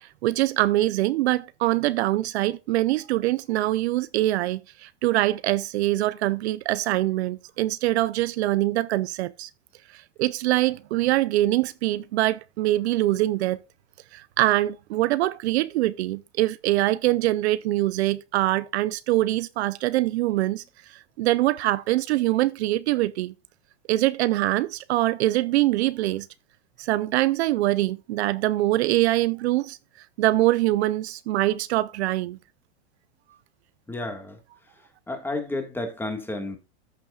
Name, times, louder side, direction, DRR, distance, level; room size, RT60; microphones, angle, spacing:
voice 1, 0.0-9.5 9.9-13.6 14.1-20.6 21.2-23.3 23.9-26.3 26.8-29.8 30.2-32.4, right 16 dB, 65° right, 0.6 m, -24 dB
voice 2, 33.9-34.4 35.1-36.6, left 2 dB, 5° left, 1.7 m, -31 dB
14.0 x 6.1 x 2.4 m
supercardioid pair, 145°, 36 cm